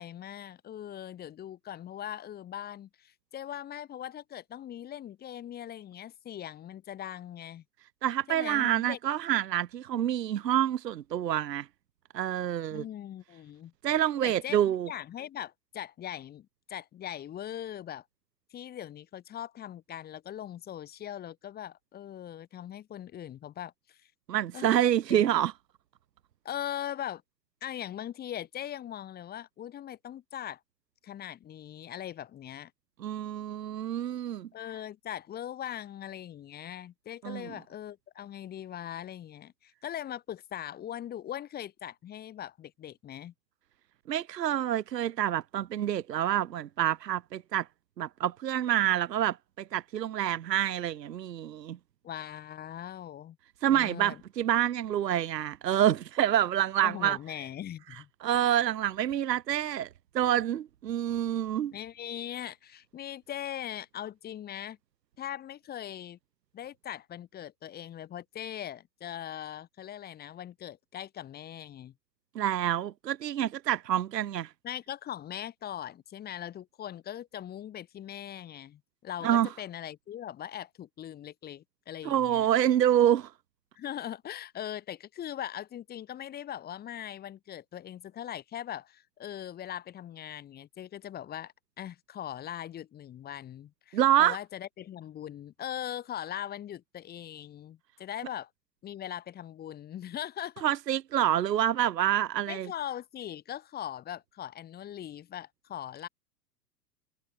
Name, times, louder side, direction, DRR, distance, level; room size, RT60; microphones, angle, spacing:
voice 1, 0.0-7.6 8.3-9.0 12.7-13.7 14.2-18.0 18.5-24.0 24.5-24.8 25.1-25.3 26.5-27.2 27.6-30.6 31.0-32.7 34.5-43.3 52.0-53.4 53.7-54.2 56.8-58.1 58.5-58.6 61.7-64.8 65.2-66.2 66.5-71.9 74.6-82.5 83.8-98.5 98.8-100.7 102.5-106.1, left 11 dB, 20° left, 1.8 m, -40 dB
voice 2, 8.0-11.7 12.1-12.8 13.8-14.9 24.3-25.5 33.0-34.5 37.2-37.5 44.1-47.7 48.0-51.8 53.6-57.2 58.2-59.9 60.1-61.7 72.4-74.5 79.2-79.5 82.0-83.3 93.9-94.4 100.6-102.7, right 11 dB, 75° right, 0.6 m, -27 dB
figure-of-eight pair, 100°, 50 cm